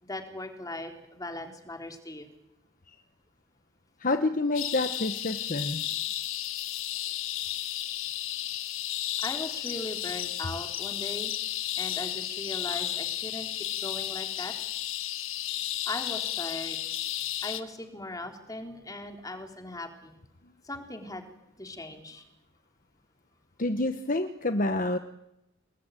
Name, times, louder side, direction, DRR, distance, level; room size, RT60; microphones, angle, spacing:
voice 1, 0.0-2.3 9.2-11.3 11.8-14.5 15.9-16.8 17.4-20.1 20.6-21.3 21.6-22.2, left 2 dB, 15° left, 4 dB, 3.6 m, -39 dB
voice 2, 4.0-5.8 23.6-25.0, left 2 dB, 40° left, 8 dB, 1.2 m, -28 dB
sound 1, 4.5-17.6, left 12 dB, 70° left, 1.6 m, -33 dB
29.5 x 21.0 x 9.2 m, 0.89 s
head